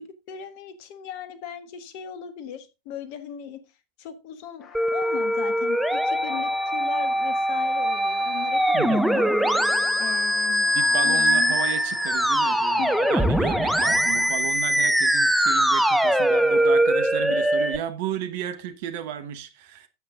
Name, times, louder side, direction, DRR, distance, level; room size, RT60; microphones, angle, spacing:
voice 1, 0.0-3.6 4.0-9.4 10.0-10.8 11.0-11.6 12.8-13.0, left 9 dB, 45° left, 1.4 m, -38 dB
sound 1, 4.6-14.3, left 5 dB, 25° left, 1.5 m, -40 dB
Musical instrument, 4.7-17.8, equal, ahead, 0.8 m, -22 dB
voice 2, 10.7-19.9, right 10 dB, 50° right, 1.2 m, -33 dB
9.6 x 8.0 x 3.7 m
figure-of-eight pair, 90°, 0 cm